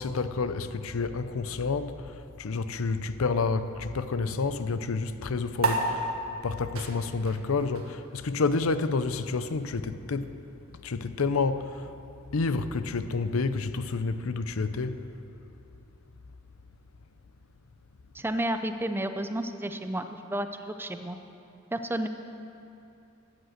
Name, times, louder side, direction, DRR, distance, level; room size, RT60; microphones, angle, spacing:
voice 1, 0.0-6.1 6.4-10.4 10.8-11.9 12.3-15.0, left 4 dB, 75° left, 0.6 m, -29 dB
sound 1, 5.6-12.4, right 2 dB, 75° right, 1.5 m, -35 dB
voice 2, 18.1-21.2 21.7-22.1, right 1 dB, 10° right, 0.5 m, -31 dB
13.0 x 8.9 x 7.9 m
head